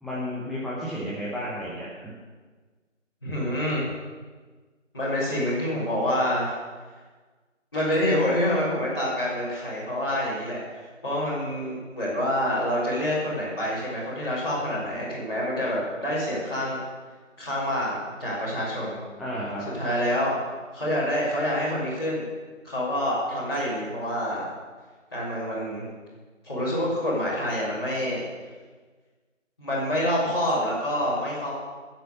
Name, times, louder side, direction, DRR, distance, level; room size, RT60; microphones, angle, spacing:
voice 1, 0.0-2.1 19.2-19.8, equal, ahead, -8 dB, 0.8 m, -32 dB
voice 2, 3.2-3.9 4.9-6.5 7.7-16.8 17.4-19.0 19.7-20.4 20.7-22.2 22.6-24.5 25.1-25.9 26.4-28.3 29.6-31.5, left 1 dB, 20° left, -14 dB, 4.0 m, -27 dB
15.5 x 7.6 x 7.0 m, 1.4 s
figure-of-eight pair, 170°, 38 cm